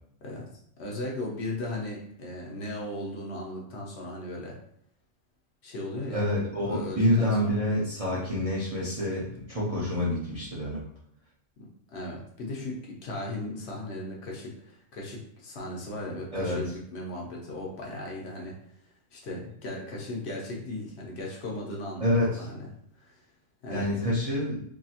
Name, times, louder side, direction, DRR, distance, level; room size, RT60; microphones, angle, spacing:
voice 1, 0.8-4.6 5.6-6.3 6.7-7.5 11.6-18.5 19.1-22.7 22.9-23.1 23.6-23.9, left 1 dB, 65° left, -2 dB, 0.9 m, -37 dB
voice 2, 6.1-10.8 16.3-16.6 22.0-22.5 23.7-24.6, left 1 dB, 40° right, -7 dB, 0.5 m, -27 dB
2.7 x 2.7 x 2.4 m, 0.70 s
omnidirectional pair, 1.3 m